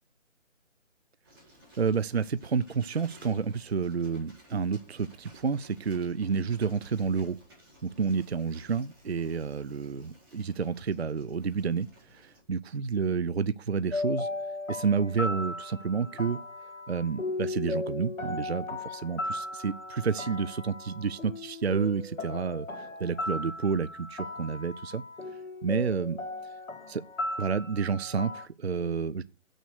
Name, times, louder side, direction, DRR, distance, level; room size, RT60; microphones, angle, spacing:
Bicycle, 1.2-12.4, right 1 dB, 15° right, 4.3 m, -57 dB
voice 1, 1.8-7.4 7.8-14.3 14.7-16.4 16.9-25.0 25.6-26.2 26.9-27.0 27.4-29.2, right 5 dB, 55° right, 0.5 m, -30 dB
sound 1, 13.9-28.5, left 2 dB, 75° left, 2.3 m, -36 dB
8.0 x 6.3 x 6.3 m
hypercardioid pair, 175°, 39 cm